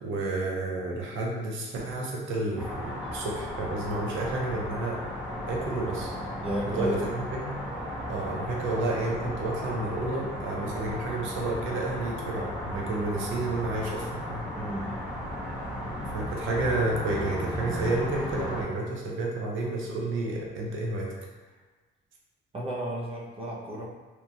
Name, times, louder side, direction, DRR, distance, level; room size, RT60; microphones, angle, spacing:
voice 1, 0.0-5.0 5.4-6.1 6.7-7.6 8.1-14.4 16.1-21.1, right 2 dB, 80° right, -2 dB, 0.6 m, -30 dB
sound 1, 2.6-18.6, equal, 5° right, 0.9 m, -35 dB
voice 2, 6.4-7.0 14.6-15.0 22.5-23.9, equal, 30° right, -3 dB, 0.5 m, -33 dB
2.9 x 2.2 x 2.6 m, 1.3 s
cardioid pair, 90°, 20 cm